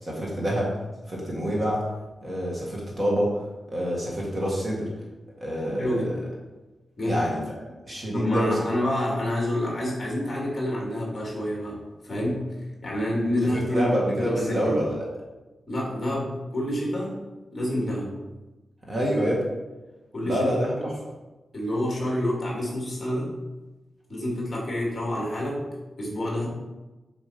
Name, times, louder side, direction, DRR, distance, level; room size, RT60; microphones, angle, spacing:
voice 1, 0.0-0.7 1.1-1.8 2.2-3.4 3.7-4.9 5.4-6.2 7.1-8.6 13.5-15.1 18.9-19.4 20.2-20.9, equal, 25° right, -3 dB, 1.8 m, -27 dB
voice 2, 5.8-6.1 7.0-7.2 8.1-11.8 12.0-12.4 12.8-14.7 15.7-17.2 17.5-18.1 20.1-20.9 21.5-23.3 24.1-25.6 26.0-26.5, left 1 dB, 20° left, -3 dB, 2.6 m, -28 dB
7.3 x 6.2 x 5.2 m, 1.1 s
wide cardioid pair, 175°, 0 cm